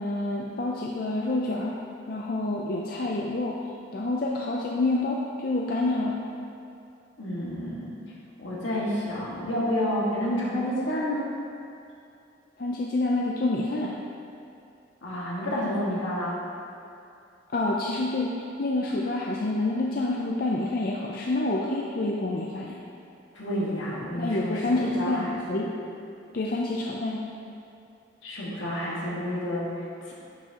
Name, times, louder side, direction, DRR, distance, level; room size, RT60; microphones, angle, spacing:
voice 1, 0.0-1.8 2.1-3.6 3.9-6.2 12.6-14.0 17.5-22.8 24.1-25.8 26.3-27.3, left 2 dB, 50° left, -2 dB, 0.5 m, -28 dB
voice 2, 7.2-7.9 8.4-11.3 15.0-16.4 23.3-25.6 28.2-30.1, equal, 80° left, -5 dB, 1.7 m, -30 dB
10.0 x 5.9 x 2.9 m, 2.6 s
head